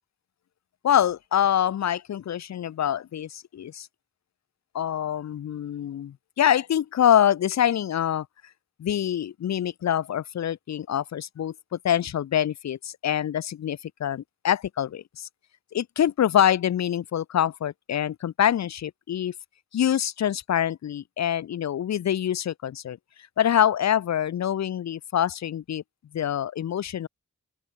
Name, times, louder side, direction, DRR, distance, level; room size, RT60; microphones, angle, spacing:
voice 1, 0.8-3.9 4.7-8.3 8.8-15.3 15.7-19.3 19.7-23.0 23.4-25.8 26.1-27.1, left 10 dB, 65° left, 0.5 m, -25 dB
open air
cardioid pair, 40°, 31 cm